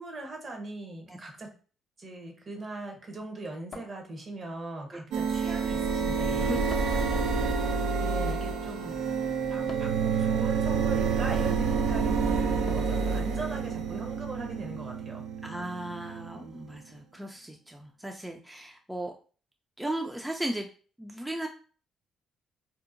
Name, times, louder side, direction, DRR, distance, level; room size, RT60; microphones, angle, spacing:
voice 1, 0.0-1.5 2.0-6.6 8.0-9.0 9.5-15.3, right 2 dB, 45° right, 3 dB, 0.8 m, -40 dB
sound 1, 3.7-4.6 6.7-7.2 9.7-10.1 12.7-13.1, left 5 dB, 55° left, 0.5 m, -47 dB
sound 2, 5.1-16.7, right 5 dB, 80° right, 0.3 m, -28 dB
voice 2, 6.4-7.4 15.4-19.1 19.8-20.7 21.0-21.5, right 1 dB, 10° right, 2 dB, 0.4 m, -36 dB
2.7 x 2.1 x 2.5 m, 0.39 s
supercardioid pair, 65°, 0 cm